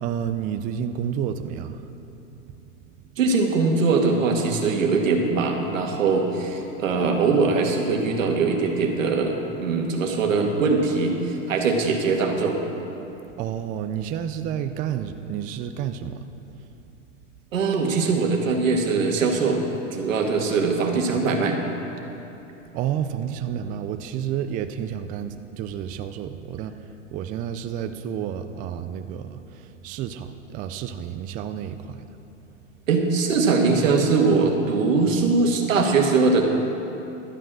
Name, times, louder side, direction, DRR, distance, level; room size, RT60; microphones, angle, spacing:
voice 1, 0.0-2.0 2.3-2.4 13.3-16.2 22.7-26.8 27.1-32.0, right 9 dB, 25° right, 9 dB, 0.4 m, -30 dB
voice 2, 3.2-12.6 17.5-21.6 32.9-36.4, right 4 dB, 85° right, 2 dB, 1.8 m, -21 dB
12.0 x 8.8 x 6.2 m, 3.0 s
hypercardioid pair, 115°, 38 cm